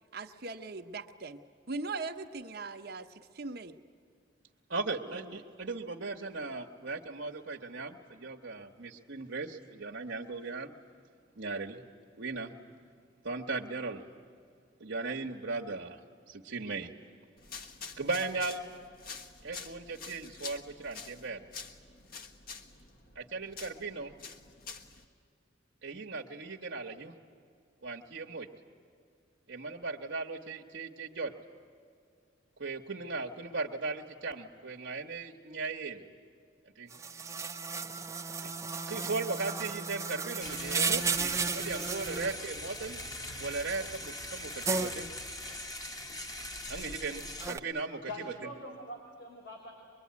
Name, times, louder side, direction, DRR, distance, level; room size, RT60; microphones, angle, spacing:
voice 1, 0.1-1.4 1.7-3.8 5.1-5.4, right 3 dB, 55° right, 7 dB, 1.0 m, -40 dB
voice 2, 4.7-10.7 11.4-11.8 12.2-12.6 13.2-14.0 14.8-16.0 16.3-16.9 18.0-18.6 19.4-21.4 23.1-24.1 25.8-27.1 27.8-28.5 29.5-31.3 32.6-36.0 36.8-36.9 38.4-38.6 38.9-43.0 43.4-45.1 46.7-48.0, right 3 dB, 80° right, 0 dB, 1.2 m, -37 dB
sound 1, 17.4-25.0, left 5 dB, 50° left, 1.4 m, -47 dB
sound 2, 36.9-42.3 44.6-44.9 47.4-47.6, right 4 dB, 15° right, 0.6 m, -33 dB
sound 3, 40.4-47.5, left 1 dB, 20° left, 1.2 m, -41 dB
voice 3, 48.1-49.7, left 1 dB, 80° left, 0 dB, 4.1 m, -43 dB
23.0 x 22.5 x 9.5 m, 2.3 s
head